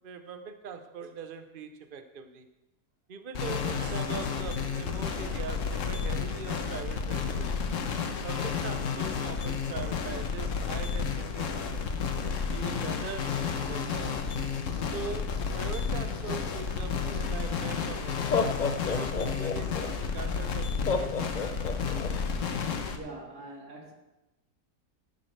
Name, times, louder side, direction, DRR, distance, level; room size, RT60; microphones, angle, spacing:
voice 1, 0.0-2.5 3.1-7.5 8.2-11.9 12.5-14.2 14.9-21.2, right 6 dB, 40° right, 9 dB, 0.8 m, -42 dB
sound 1, 3.3-23.0, left 6 dB, 60° left, 1.2 m, -31 dB
Laughter, 17.4-17.5 18.1-19.9 20.9-22.1, left 5 dB, 75° left, 0.4 m, -30 dB
voice 2, 22.9-23.9, right 2 dB, 80° right, 0 dB, 2.7 m, -43 dB
14.5 x 10.5 x 3.3 m, 0.99 s
omnidirectional pair, 1.7 m